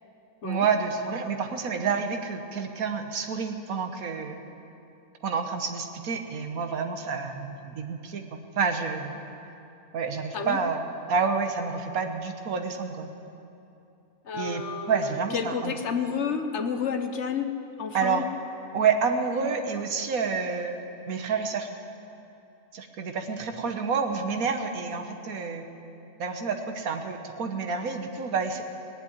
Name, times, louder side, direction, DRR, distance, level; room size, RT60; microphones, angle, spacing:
voice 1, 0.4-4.4 5.2-9.2 9.9-13.1 14.3-15.7 17.9-18.3 18.7-20.8 21.1-21.7 22.7-25.6 26.2-28.6, right 5 dB, 90° right, 5 dB, 1.5 m, -29 dB
voice 2, 14.3-15.0 15.3-17.5 17.8-18.2, left 6 dB, 60° left, 7 dB, 1.1 m, -30 dB
18.5 x 7.7 x 9.8 m, 2.7 s
omnidirectional pair, 1.4 m